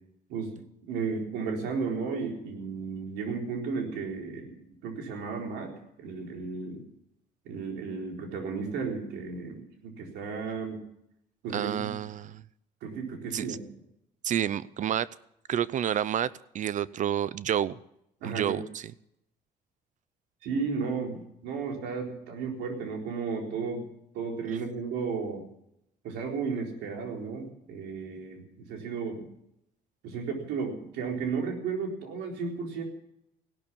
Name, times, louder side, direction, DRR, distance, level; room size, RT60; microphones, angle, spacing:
voice 1, 0.3-5.7 6.0-6.9 7.4-10.8 11.4-11.9 12.8-13.6 18.2-18.6 20.4-23.8 24.1-25.4 26.0-29.3 30.0-32.8, right 5 dB, 85° right, 2 dB, 4.0 m, -34 dB
voice 2, 11.5-12.4 13.3-13.6 14.2-15.1 15.5-17.8 18.2-18.9, right 10 dB, 50° right, 20 dB, 0.5 m, -29 dB
17.0 x 12.0 x 7.0 m, 0.78 s
cardioid pair, 110°, 17 cm